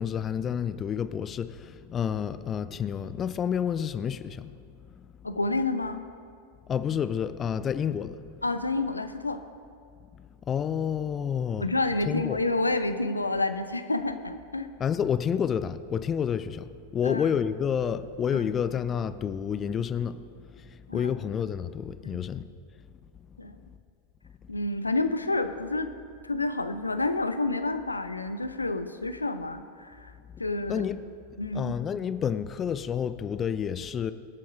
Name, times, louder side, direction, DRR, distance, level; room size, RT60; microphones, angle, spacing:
voice 1, 0.0-4.6 5.0-5.1 6.7-8.4 10.2-11.7 12.1-12.4 14.8-20.2 20.5-22.4 30.3-30.4 30.7-31.0 31.5-34.1, left 8 dB, 25° left, 0.4 m, -29 dB
voice 2, 5.2-6.0 8.4-9.4 11.6-14.7 17.0-17.3 18.3-18.5 20.9-21.1 22.0-22.2 23.4-23.6 24.5-25.9 26.2-30.1 30.4-30.9 31.4-31.7, left 2 dB, 80° left, 0.6 m, -29 dB
25.0 x 8.4 x 2.5 m
figure-of-eight pair, 90°, 0 cm